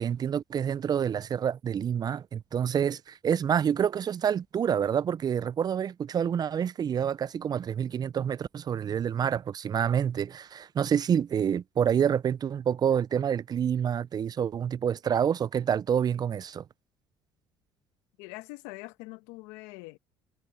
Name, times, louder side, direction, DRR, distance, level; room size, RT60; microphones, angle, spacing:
voice 1, 0.0-16.6, right 8 dB, 40° right, 0.5 m, -27 dB
voice 2, 18.2-20.0, left 22 dB, 80° left, 1.3 m, -43 dB
supercardioid pair, 75°, 10 cm